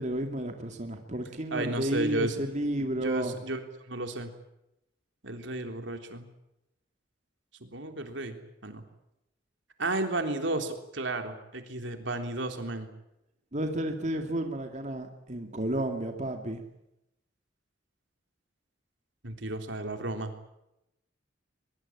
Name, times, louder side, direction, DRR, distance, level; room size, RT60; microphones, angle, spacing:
voice 1, 0.0-3.3 13.5-16.6, right 1 dB, 40° right, 4 dB, 2.4 m, -32 dB
voice 2, 1.5-2.4 3.0-3.6 3.9-4.3 5.2-6.2 7.6-8.8 9.8-12.9 19.2-20.3, right 2 dB, 80° right, 5 dB, 3.5 m, -33 dB
23.0 x 22.5 x 8.8 m, 0.85 s
head